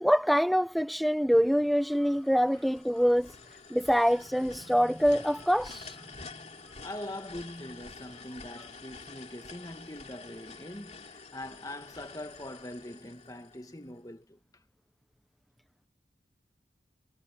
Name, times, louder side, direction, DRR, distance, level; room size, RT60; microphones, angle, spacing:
voice 1, 0.0-3.3 3.7-6.0, equal, ahead, 0.4 m, -25 dB
sound 1, 1.9-14.0, left 4 dB, 35° left, 2.8 m, -49 dB
voice 2, 6.8-14.4, left 1 dB, 20° left, 1.7 m, -43 dB
head